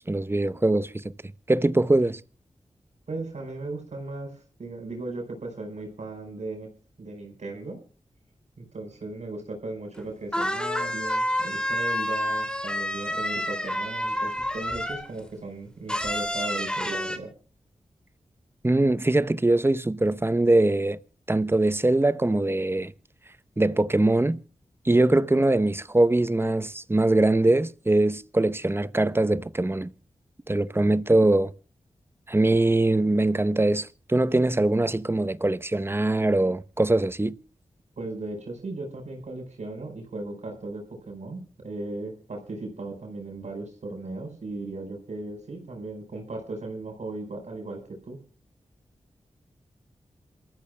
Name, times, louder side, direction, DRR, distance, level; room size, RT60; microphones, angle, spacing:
voice 1, 0.1-0.9 1.5-2.2 18.6-21.0 21.3-22.9 23.6-24.4 24.8-29.9 30.5-31.5 32.3-37.4, right 2 dB, 20° right, 0.8 m, -22 dB
voice 2, 3.1-6.7 7.0-7.8 8.6-17.3 38.0-48.2, right 2 dB, 70° right, 4.8 m, -37 dB
sound 1, 10.0-10.1 10.3-15.2 15.9-17.2, left 1 dB, 5° left, 2.5 m, -29 dB
27.5 x 14.0 x 2.2 m
cardioid pair, 55°, 12 cm